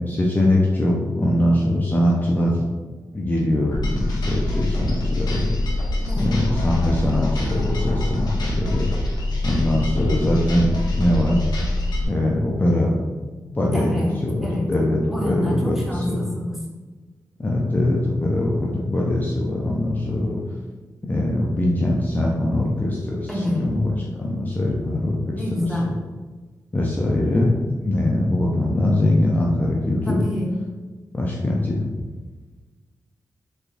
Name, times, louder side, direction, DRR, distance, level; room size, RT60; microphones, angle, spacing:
voice 1, 0.1-2.7 3.1-5.4 6.2-8.9 9.4-11.4 12.1-12.9 13.2-14.0 14.2-16.2 17.4-20.4 21.1-23.3 23.6-23.8 24.2-25.4 26.7-30.2 31.1-31.8, left 1 dB, 25° left, -3 dB, 0.5 m, -22 dB
sound 1, 3.7-12.0, left 1 dB, 70° left, 0.8 m, -24 dB
voice 2, 13.7-14.7 15.1-16.6 23.3-23.7 25.3-25.9 30.0-30.5, left 1 dB, 5° right, -3 dB, 1.0 m, -27 dB
3.5 x 3.4 x 2.4 m, 1.3 s
cardioid pair, 60°, 7 cm